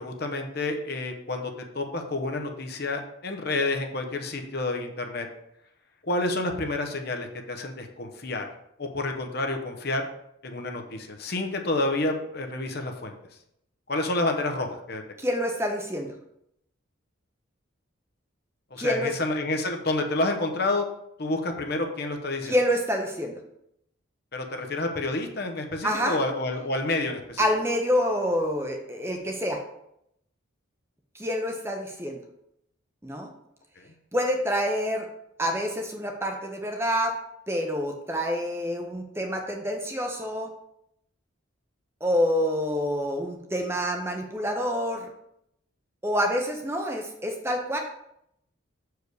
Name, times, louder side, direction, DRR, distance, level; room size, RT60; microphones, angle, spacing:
voice 1, 0.0-5.3 6.0-8.5 8.8-10.1 10.4-13.1 13.9-15.0 18.7-20.9 21.2-22.5 24.3-27.4 33.8-33.9, left 2 dB, 50° left, 4 dB, 0.8 m, -29 dB
voice 2, 15.2-16.1 18.8-19.1 22.5-23.3 25.8-26.2 27.4-29.6 31.1-32.2 33.0-33.3 34.1-35.1 35.4-37.2 37.5-40.5 42.0-45.1 46.0-47.8, equal, 10° right, 2 dB, 0.8 m, -27 dB
6.7 x 4.8 x 4.8 m, 0.77 s
head